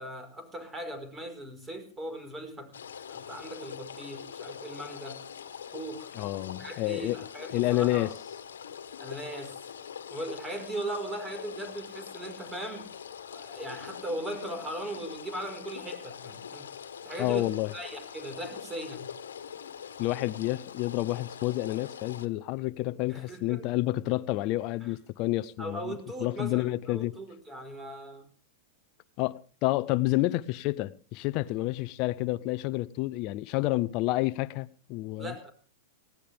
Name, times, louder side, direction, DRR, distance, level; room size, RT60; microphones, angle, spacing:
voice 1, 0.0-2.8 3.1-5.2 5.7-6.1 6.6-8.1 9.0-9.6 10.1-12.9 13.3-16.7 17.0-19.1 23.1-23.7 24.8-24.9 25.6-28.3 35.2-35.5, right 1 dB, 15° right, 4.9 m, -39 dB
sound 1, 2.7-22.3, left 7 dB, 85° left, 1.5 m, -43 dB
voice 2, 6.1-7.2 7.5-8.1 17.2-17.7 20.0-27.1 29.2-35.3, left 18 dB, 45° left, 0.7 m, -29 dB
19.5 x 16.0 x 3.5 m
hypercardioid pair, 120°, 0 cm